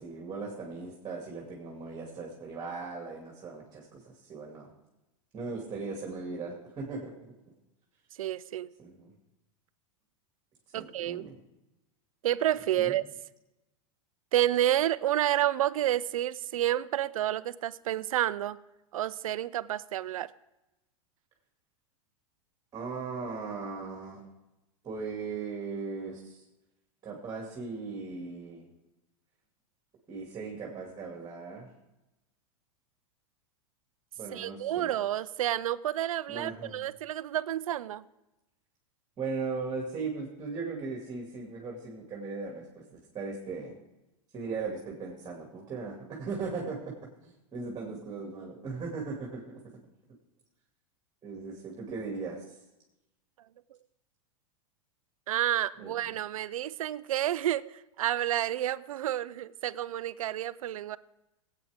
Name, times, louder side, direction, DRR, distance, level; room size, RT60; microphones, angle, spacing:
voice 1, 0.0-4.7 5.3-7.1 8.8-9.1 10.7-11.4 12.8-13.0 22.7-24.2 24.8-26.4 27.0-28.7 30.1-31.7 34.2-34.9 36.3-36.8 39.2-43.8 44.3-49.6 51.2-52.6 55.8-55.9, right 4 dB, 25° right, -1 dB, 2.5 m, -38 dB
voice 2, 8.2-8.7 10.7-11.3 12.2-13.0 14.3-18.6 18.9-20.3 34.3-38.0 55.3-61.0, right 12 dB, 85° right, 17 dB, 0.5 m, -30 dB
17.5 x 8.5 x 3.5 m, 0.97 s
hypercardioid pair, 120°, 17 cm